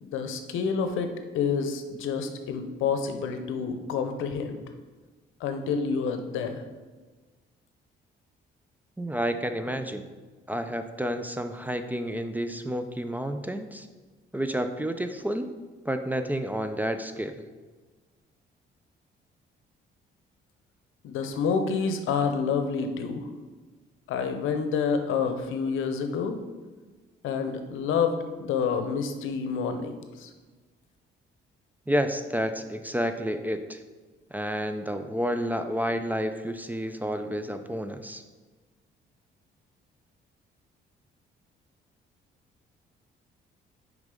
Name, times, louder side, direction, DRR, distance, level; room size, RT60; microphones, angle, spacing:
voice 1, 0.0-4.6 5.4-6.6 21.0-23.3 24.1-26.4 27.2-30.3, left 5 dB, 85° left, 7 dB, 0.7 m, -28 dB
voice 2, 9.0-10.0 10.5-13.9 14.3-15.5 15.9-17.3 31.9-33.8 34.3-38.2, equal, 10° right, 8 dB, 0.4 m, -30 dB
6.2 x 5.0 x 3.7 m, 1.3 s
cardioid pair, 90°, 20 cm